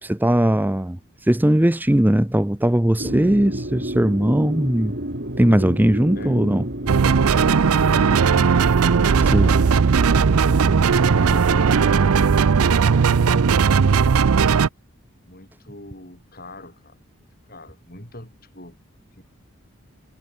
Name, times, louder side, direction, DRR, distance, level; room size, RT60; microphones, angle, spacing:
voice 1, 0.0-4.9 5.4-6.7 9.2-9.5, right 1 dB, 10° right, 0.5 m, -19 dB
sound 1, 3.0-12.3, right 1 dB, 50° right, 3.3 m, -30 dB
voice 2, 6.9-9.7 11.1-13.8 15.2-18.8 19.2-19.3, left 1 dB, 40° left, 6.4 m, -41 dB
sound 2, 6.9-14.7, right 6 dB, 80° right, 0.5 m, -17 dB
head